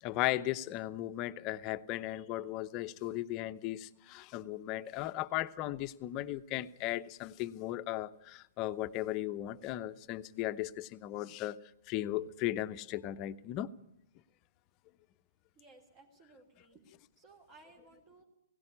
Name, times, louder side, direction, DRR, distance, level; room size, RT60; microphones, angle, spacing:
voice 1, 0.0-11.6 11.9-13.7, left 14 dB, 35° left, 0.8 m, -36 dB
voice 2, 15.5-16.8 17.2-18.2, right 3 dB, 35° right, 3.2 m, -59 dB
17.0 x 16.5 x 9.8 m
hypercardioid pair, 125°, 0 cm